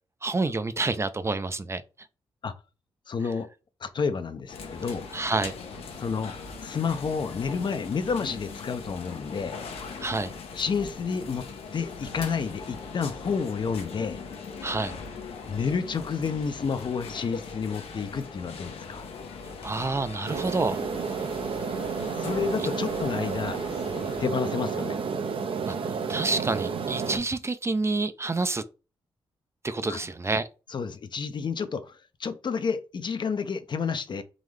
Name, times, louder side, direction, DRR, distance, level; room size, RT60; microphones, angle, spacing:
voice 1, 0.2-1.8 5.1-5.5 10.0-10.3 14.6-14.9 19.6-20.8 25.7-28.6 29.6-30.5, right 3 dB, 25° right, 0.5 m, -28 dB
voice 2, 3.1-3.5 3.8-5.0 6.0-6.3 6.6-9.6 10.5-11.4 11.7-14.2 15.5-19.1 22.2-23.6 24.2-25.0 29.9-30.0 30.7-34.2, left 5 dB, 50° left, 0.6 m, -30 dB
sound 1, 4.5-24.3, left 4 dB, 85° left, 0.8 m, -40 dB
sound 2, 20.3-27.2, right 5 dB, 65° right, 0.7 m, -31 dB
3.8 x 3.0 x 3.2 m
cardioid pair, 60°, 10 cm